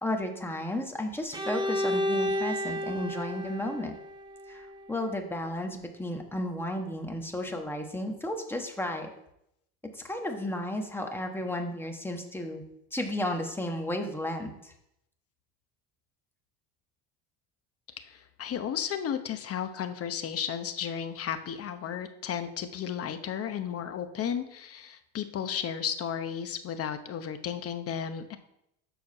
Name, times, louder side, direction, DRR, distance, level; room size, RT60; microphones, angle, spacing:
voice 1, 0.0-3.9 4.5-9.1 9.9-12.6 12.9-14.7, left 1 dB, 5° left, 4 dB, 1.2 m, -33 dB
Bowed string instrument, 1.3-5.2, left 1 dB, 10° right, 0.9 m, -32 dB
voice 2, 18.0-28.4, left 8 dB, 40° left, 9 dB, 0.9 m, -34 dB
6.5 x 4.6 x 6.4 m, 0.79 s
supercardioid pair, 105°, 37 cm